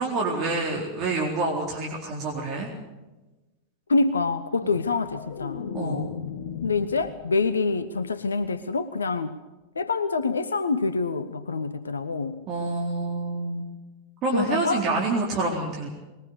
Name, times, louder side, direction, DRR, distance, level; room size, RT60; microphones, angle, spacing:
voice 1, 0.0-2.7 4.6-4.7 5.7-6.1 12.5-13.6 14.2-15.9, right 3 dB, 35° right, -1 dB, 4.0 m, -27 dB
voice 2, 3.9-6.1 6.6-9.4 9.7-12.4 14.3-14.9, left 4 dB, 75° left, 13 dB, 1.0 m, -26 dB
sound 1, 4.5-7.7 8.0-8.4, left 7 dB, 55° left, 1.6 m, -37 dB
21.5 x 20.0 x 6.7 m, 1.1 s
figure-of-eight pair, 90°, 0 cm